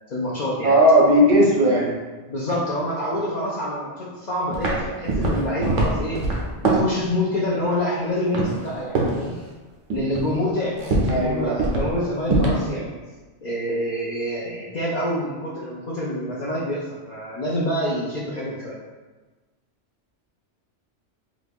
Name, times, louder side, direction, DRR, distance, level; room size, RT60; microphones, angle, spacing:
voice 1, 0.1-0.8 1.3-1.5 2.3-6.3 6.6-9.4 9.9-12.9 13.4-18.8, left 1 dB, 55° left, -6 dB, 0.5 m, -27 dB
voice 2, 0.6-1.9 11.1-11.6, equal, 60° right, -3 dB, 0.7 m, -16 dB
sound 1, 4.5-4.8 5.1-7.0 8.3-8.7 8.9-9.2 9.9-10.3 10.8-11.2 11.6-11.9 12.2-12.6, right 2 dB, 85° right, 1.1 m, -22 dB
3.0 x 2.4 x 3.4 m, 1.2 s
omnidirectional pair, 1.2 m